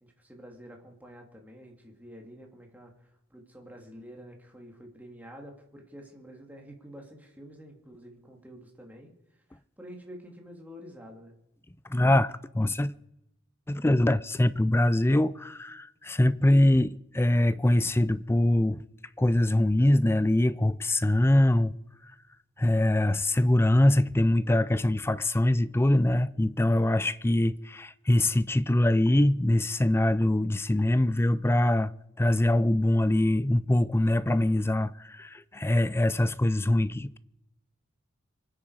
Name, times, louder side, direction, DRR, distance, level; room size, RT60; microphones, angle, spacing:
voice 1, 0.0-9.1 9.5-11.3, equal, 10° right, 2.8 m, -48 dB
voice 2, 11.9-12.9 13.7-18.8 19.2-21.7 22.6-31.9 32.2-37.2, left 1 dB, 10° left, 0.5 m, -23 dB
25.0 x 9.9 x 4.9 m
head